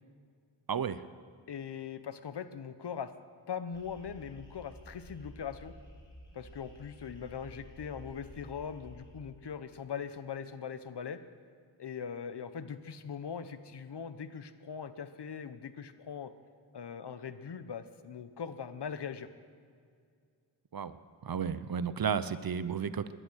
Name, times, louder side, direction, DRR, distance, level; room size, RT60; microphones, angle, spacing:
voice 1, 0.7-1.0 20.7-21.0 21.2-23.1, right 7 dB, 50° right, 14 dB, 0.8 m, -33 dB
voice 2, 1.5-3.1 3.5-5.7 6.3-11.2 11.8-16.3 16.7-19.3, left 7 dB, 60° left, 12 dB, 1.1 m, -41 dB
sound 1, 3.7-9.2, equal, 10° left, 4.7 m, -52 dB
19.0 x 11.0 x 6.4 m, 2.2 s
cardioid pair, 50°, 45 cm